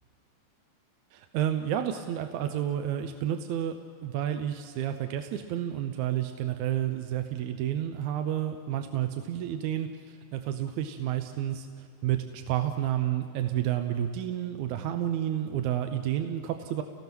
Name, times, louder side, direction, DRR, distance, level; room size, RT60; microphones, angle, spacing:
voice 1, 1.1-16.8, right 11 dB, 75° right, 7 dB, 2.0 m, -30 dB
29.5 x 18.0 x 6.1 m, 2.2 s
omnidirectional pair, 3.6 m